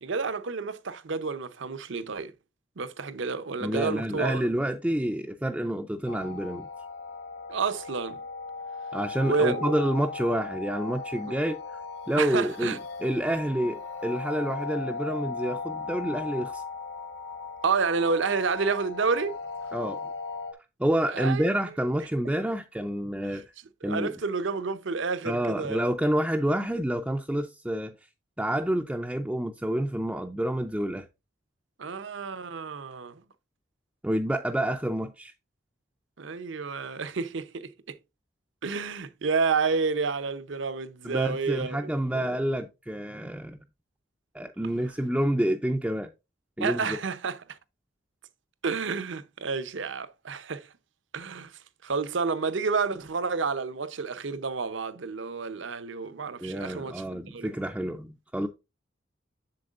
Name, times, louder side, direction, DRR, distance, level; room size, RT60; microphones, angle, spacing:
voice 1, 0.0-2.3 2.8-4.5 7.5-8.2 9.2-9.7 12.2-12.8 17.6-19.3 21.1-21.5 22.3-22.4 23.3-23.4 23.8-25.8 31.8-33.2 36.2-38.0 38.6-42.4 46.6-47.4 48.6-50.7 51.1-51.5 51.8-57.5, right 5 dB, 65° right, 0.7 m, -30 dB
voice 2, 3.6-6.7 8.9-11.8 12.1-16.6 19.7-20.0 20.8-23.4 23.8-24.1 25.2-27.9 28.4-31.1 34.0-35.3 41.0-43.6 44.3-46.1 46.6-47.0 56.4-58.5, right 1 dB, 5° right, 0.4 m, -28 dB
sound 1, 6.1-20.5, left 4 dB, 55° left, 1.1 m, -37 dB
7.6 x 7.1 x 2.4 m
head